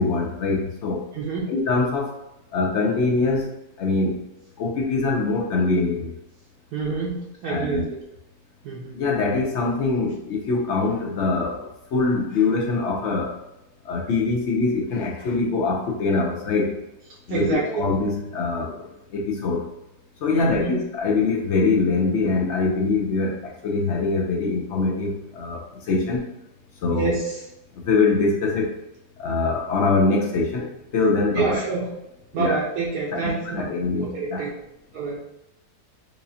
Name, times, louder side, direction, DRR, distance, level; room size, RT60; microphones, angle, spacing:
voice 1, 0.0-1.0 1.5-2.1 2.5-4.2 4.6-6.1 7.5-7.8 8.9-13.4 13.8-16.8 17.3-19.7 20.2-26.2 26.8-27.1 27.7-28.7 29.2-31.6 32.3-32.6 33.1-34.4, left 3 dB, 65° left, 0 dB, 0.7 m, -23 dB
voice 2, 1.1-1.5 6.7-8.0 8.6-9.0 17.3-17.9 20.3-20.8 26.9-27.4 31.3-31.9 32.3-33.7 34.0-34.5 34.9-35.2, right 4 dB, 80° right, -5 dB, 1.2 m, -27 dB
4.8 x 2.5 x 2.6 m, 0.91 s
omnidirectional pair, 1.7 m